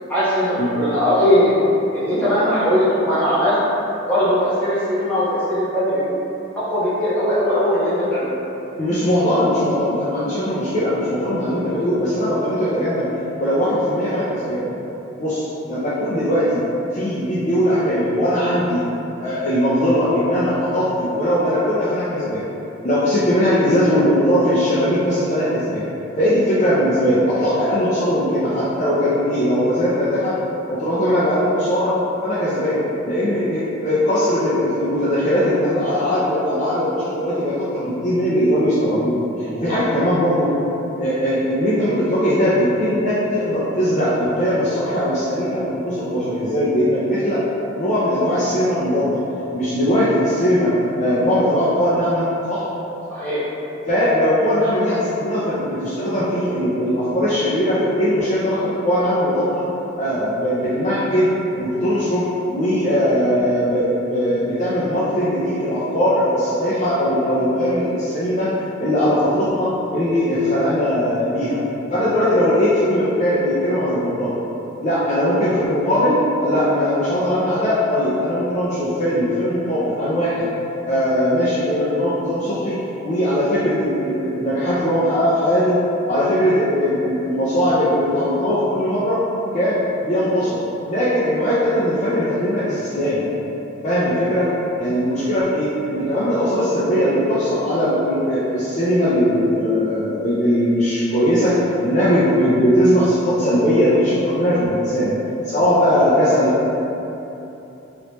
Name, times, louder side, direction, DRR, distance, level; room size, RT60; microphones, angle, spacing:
voice 1, 0.1-1.5 1.9-3.6 4.1-6.2 6.6-8.3 40.0-40.1 53.1-53.4, equal, 10° left, -13 dB, 1.0 m, -19 dB
voice 2, 8.8-13.1 13.4-14.6 15.2-16.6 16.9-18.8 19.2-22.4 22.8-25.8 26.2-30.3 30.7-31.9 32.2-40.5 41.0-47.4 47.7-49.2 49.5-52.7 53.8-59.6 60.0-61.3 61.6-68.5 68.8-71.6 71.9-74.4 74.8-80.5 80.8-82.8 83.0-85.8 86.1-89.2 89.5-90.6 90.9-93.2 93.8-94.5 94.8-101.6 101.8-105.1 105.4-106.7, equal, 35° left, -10 dB, 0.4 m, -19 dB
3.1 x 2.9 x 3.0 m, 3.0 s
head